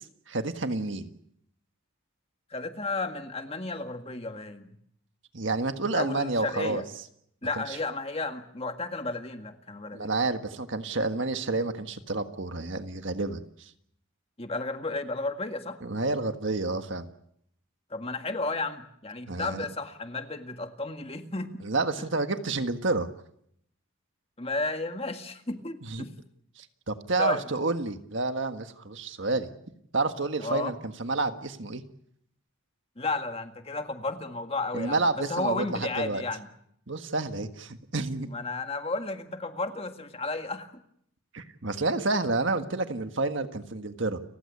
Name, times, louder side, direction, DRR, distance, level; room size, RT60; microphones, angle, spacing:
voice 1, 0.3-1.1 5.3-6.8 7.7-7.8 9.9-13.7 15.8-17.1 19.3-19.6 21.6-23.1 25.8-26.0 26.6-29.5 29.9-31.8 34.7-36.2 36.9-38.3 41.3-44.2, right 3 dB, 60° right, 8 dB, 1.6 m, -29 dB
voice 2, 2.5-4.8 5.9-6.8 7.4-10.1 14.4-15.8 17.9-21.6 24.4-26.1 27.2-27.4 30.4-30.7 33.0-36.5 38.3-40.7, left 3 dB, 30° left, 7 dB, 1.8 m, -33 dB
30.0 x 15.5 x 8.4 m, 0.71 s
head